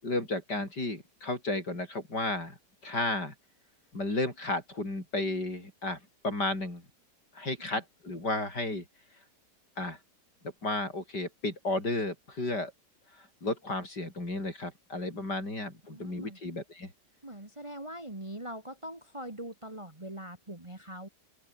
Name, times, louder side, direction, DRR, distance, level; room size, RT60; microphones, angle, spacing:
voice 1, 0.0-2.6 2.8-3.3 3.9-6.8 7.3-8.8 9.8-10.0 10.6-12.7 13.2-16.9, left 2 dB, 75° left, 8.0 m, -33 dB
voice 2, 15.9-16.4 17.2-21.1, right 1 dB, 15° right, 2.8 m, -42 dB
open air
omnidirectional pair, 1.8 m